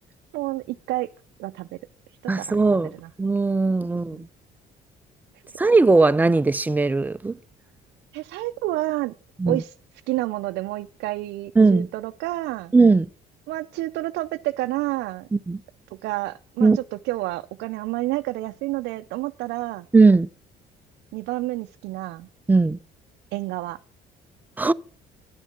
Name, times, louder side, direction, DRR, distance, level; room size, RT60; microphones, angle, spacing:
voice 1, 0.3-1.1 1.4-1.8 2.2-2.6 2.9-3.1 3.9-4.3 8.1-9.1 9.5-9.7 10.1-12.7 13.5-15.3 15.9-19.9 21.1-22.3 23.3-23.8, right 18 dB, 85° right, 0.5 m, -29 dB
voice 2, 2.3-2.9 3.2-4.2 5.6-7.4 9.4-9.6 11.6-11.9 12.7-13.1 15.3-15.6 16.6-16.8 19.9-20.3 22.5-22.8 24.6-24.7, right 3 dB, 10° right, 0.4 m, -18 dB
10.5 x 7.2 x 5.8 m
cardioid pair, 110°, 17 cm